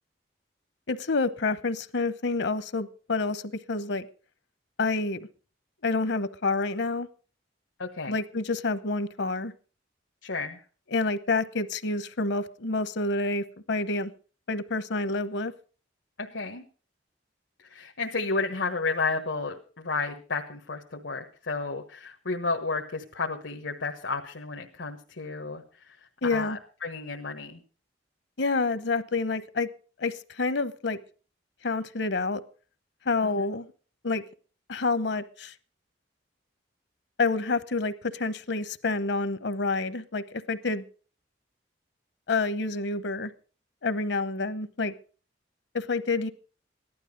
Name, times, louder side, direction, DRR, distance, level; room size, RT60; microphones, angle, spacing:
voice 1, 0.9-3.4 3.7-4.1 4.8-5.3 5.8-7.1 8.1-9.5 10.9-14.1 14.5-15.5 26.2-26.6 28.4-29.7 30.0-31.0 31.6-32.4 33.0-33.7 34.0-34.2 34.7-35.5 37.2-40.8 42.3-43.3 43.8-44.9 45.7-46.3, left 3 dB, 65° left, 15 dB, 0.9 m, -28 dB
voice 2, 7.8-8.1 10.2-10.6 16.2-16.6 17.7-26.0 26.2-27.6 33.2-33.4, left 3 dB, 90° left, 3 dB, 1.3 m, -32 dB
15.5 x 11.5 x 5.2 m, 0.39 s
head